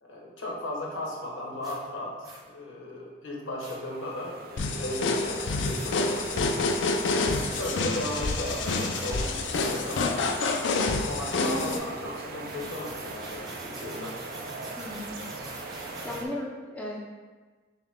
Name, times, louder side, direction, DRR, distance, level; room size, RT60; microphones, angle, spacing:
voice 1, 0.0-2.1 2.4-6.5 6.8-7.0 7.6-10.3 11.0-14.1, left 1 dB, 85° left, -2 dB, 1.1 m, -36 dB
sound 1, 1.6-1.8 2.2-2.4 3.6-3.8 5.6-5.9 7.3-7.8 8.4-9.1 9.5-10.1 11.4-11.9 12.4-16.2, right 1 dB, 20° right, 0.9 m, -44 dB
sound 2, 3.8-16.2, right 3 dB, 50° right, 0.4 m, -40 dB
sound 3, 4.6-11.8, left 3 dB, 65° left, 0.4 m, -28 dB
voice 2, 11.4-11.8 14.8-15.2 15.7-17.0, left 1 dB, 5° left, -4 dB, 0.5 m, -35 dB
6.6 x 2.2 x 3.5 m, 1.4 s
head